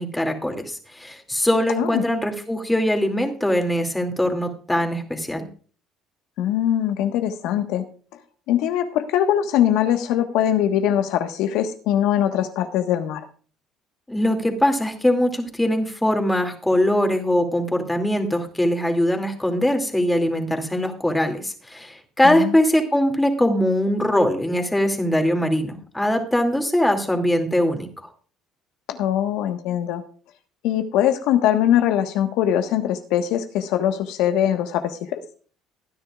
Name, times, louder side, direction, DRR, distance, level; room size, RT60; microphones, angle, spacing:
voice 1, 0.0-5.5 14.1-27.9, left 1 dB, 10° left, 4 dB, 2.6 m, -21 dB
voice 2, 6.4-7.9 8.5-13.2 22.2-22.5 28.9-30.0 30.6-35.2, left 10 dB, 75° left, 7 dB, 1.4 m, -22 dB
20.0 x 9.9 x 2.4 m, 0.41 s
supercardioid pair, 85°, 0 cm